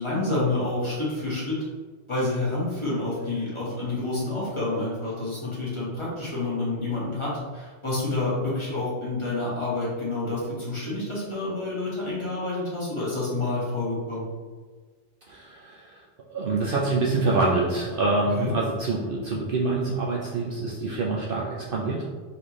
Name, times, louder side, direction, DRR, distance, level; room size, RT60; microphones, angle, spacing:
voice 1, 0.0-1.6 2.1-14.2 18.3-18.5, left 2 dB, 25° left, -8 dB, 1.3 m, -28 dB
voice 2, 15.3-16.0 16.3-22.0, right 3 dB, 60° right, -3 dB, 0.7 m, -26 dB
4.2 x 3.3 x 3.0 m, 1.5 s
omnidirectional pair, 1.2 m